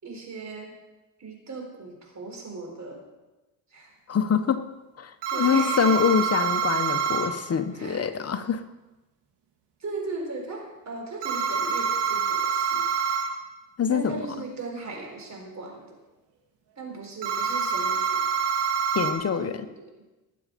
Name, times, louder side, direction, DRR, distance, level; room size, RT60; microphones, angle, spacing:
voice 1, 0.0-0.7 1.2-3.1 3.7-3.9 5.3-6.0 7.7-8.1 9.8-12.8 13.9-16.0 16.8-18.3 19.4-19.8, right 3 dB, 45° right, 1 dB, 4.0 m, -37 dB
voice 2, 4.1-4.7 5.0-8.6 13.8-14.2 18.9-19.7, left 7 dB, 35° left, 8 dB, 1.1 m, -25 dB
sound 1, 5.2-7.3 11.2-13.3 17.2-19.1, right 6 dB, 85° right, 2.4 m, -26 dB
19.5 x 7.5 x 5.2 m, 1.1 s
cardioid pair, 95°, 40 cm